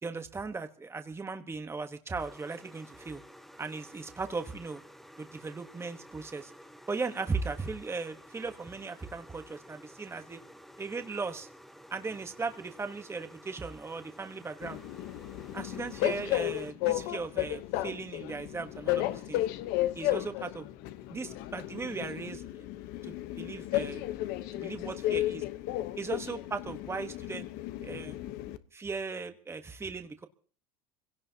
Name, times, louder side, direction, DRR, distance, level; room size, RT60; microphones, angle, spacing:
voice 1, 0.0-3.2 3.6-4.8 5.2-6.5 6.9-10.4 10.8-11.5 11.9-14.8 15.5-19.4 19.9-20.7 21.1-22.6 23.0-24.0 24.5-25.4 26.0-27.5 27.8-28.1 28.7-30.3, right 4 dB, 15° right, 7 dB, 1.3 m, -37 dB
sound 1, 2.2-16.7, equal, ahead, 1.2 m, -53 dB
Train, 14.6-28.6, left 15 dB, 65° left, 1.1 m, -34 dB
24.5 x 17.0 x 2.9 m, 0.41 s
supercardioid pair, 115°, 18 cm